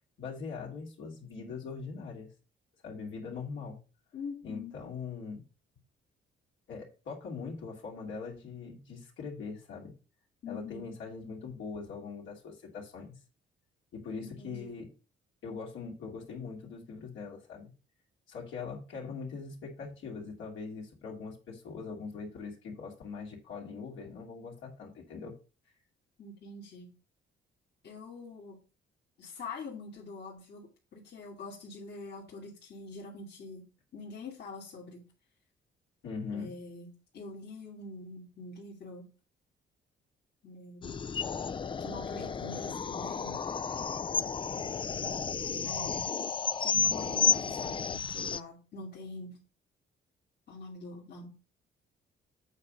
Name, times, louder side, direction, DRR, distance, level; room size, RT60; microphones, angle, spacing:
voice 1, 0.2-2.3 2.8-3.8 4.4-5.4 6.7-9.9 10.5-13.1 13.9-14.9 15.4-17.7 18.3-25.3 36.0-36.5, left 5 dB, 75° left, -3 dB, 2.7 m, -41 dB
voice 2, 4.1-4.7 10.4-11.0 14.2-14.8 26.2-26.9 27.8-28.6 29.2-33.6 33.9-35.1 36.3-39.1 40.4-40.9 41.8-43.4 45.7-46.2 46.6-49.4 50.5-51.3, left 3 dB, 55° left, -3 dB, 2.2 m, -45 dB
sound 1, 40.8-48.4, left 6 dB, 25° left, 0.4 m, -32 dB
8.1 x 4.2 x 6.2 m, 0.34 s
cardioid pair, 90°, 20 cm